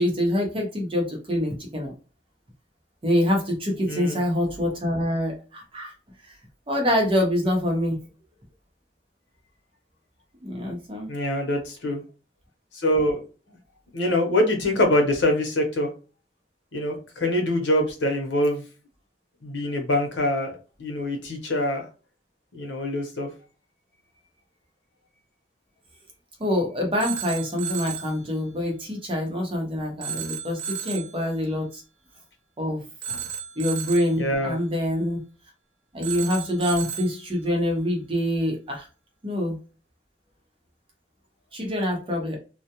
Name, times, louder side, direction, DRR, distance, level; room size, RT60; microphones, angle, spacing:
voice 1, 0.0-1.9 3.0-5.9 6.2-6.4 6.7-8.0 10.4-11.1 26.4-31.8 32.6-33.2 33.6-35.2 35.9-38.9 39.2-39.6 41.5-42.4, equal, 30° right, 0 dB, 0.7 m, -25 dB
voice 2, 3.9-4.2 11.1-12.0 12.7-13.2 13.9-15.9 16.7-18.6 19.4-20.5 20.8-21.9 22.5-23.3 34.2-34.6, left 1 dB, 75° left, 2 dB, 0.8 m, -24 dB
Telephone, 27.0-28.2 30.0-31.2 33.0-34.2 36.0-37.2, right 7 dB, 80° right, 0.4 m, -33 dB
2.3 x 2.0 x 2.8 m, 0.34 s
head